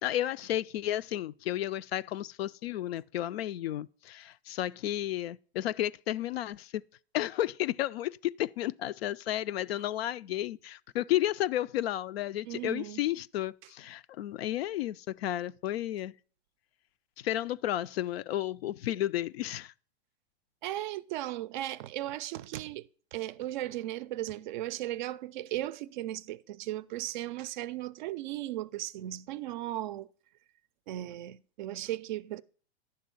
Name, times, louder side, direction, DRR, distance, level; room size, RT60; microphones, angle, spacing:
voice 1, 0.0-6.8 7.1-16.1 17.2-19.7, left 13 dB, 70° left, 0.5 m, -32 dB
voice 2, 12.5-13.0 20.6-30.1 30.9-32.4, right 14 dB, 50° right, 0.4 m, -36 dB
10.5 x 3.7 x 6.9 m
hypercardioid pair, 120°, 32 cm